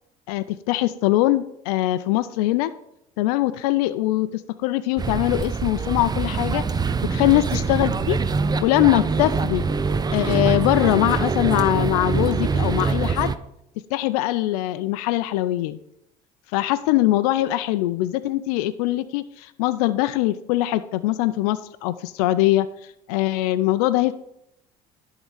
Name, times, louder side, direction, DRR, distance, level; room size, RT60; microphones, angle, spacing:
voice 1, 0.3-2.7 3.2-6.6 7.1-8.2 8.6-9.6 10.1-13.3 13.9-15.8 16.5-22.7 23.1-24.1, left 15 dB, 90° left, 13 dB, 0.4 m, -22 dB
sound 1, 5.0-13.4, right 4 dB, 20° right, 0.6 m, -24 dB
11.0 x 3.7 x 7.2 m, 0.79 s
supercardioid pair, 85°, 19 cm